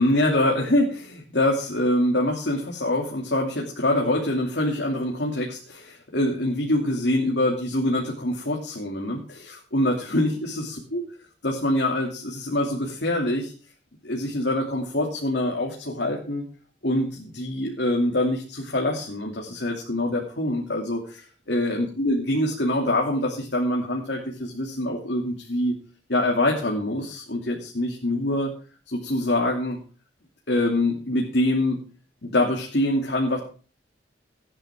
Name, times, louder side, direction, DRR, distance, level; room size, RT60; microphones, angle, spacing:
voice 1, 0.0-11.0 11.4-13.5 14.0-16.4 16.8-25.7 26.1-28.5 28.9-29.8 30.5-31.8 32.2-33.4, left 1 dB, 70° left, -1 dB, 2.9 m, -25 dB
17.5 x 10.5 x 3.7 m, 0.38 s
head